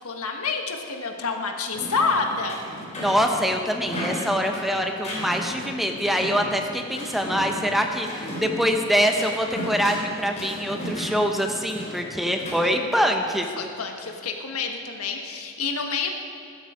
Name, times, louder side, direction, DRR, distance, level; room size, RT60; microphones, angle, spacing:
voice 1, 0.0-2.6 13.6-16.1, left 4 dB, 90° left, 4 dB, 1.5 m, -28 dB
sound 1, 1.7-12.6, equal, 35° left, 3.5 m, -35 dB
voice 2, 3.0-13.5, equal, ahead, 3 dB, 0.9 m, -24 dB
15.0 x 12.5 x 5.1 m, 2.5 s
head